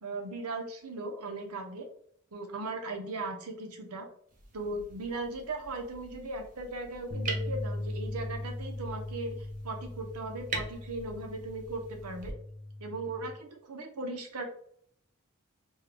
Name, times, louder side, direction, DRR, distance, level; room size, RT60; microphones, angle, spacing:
voice 1, 0.0-1.9 2.3-4.1 4.5-9.4 9.6-12.3 12.8-14.4, right 2 dB, 85° right, 4 dB, 0.8 m, -38 dB
sound 1, 4.3-12.3, right 3 dB, 35° right, 0.6 m, -44 dB
sound 2, 7.1-13.4, left 1 dB, 30° left, 0.4 m, -39 dB
3.6 x 2.3 x 3.3 m, 0.64 s
head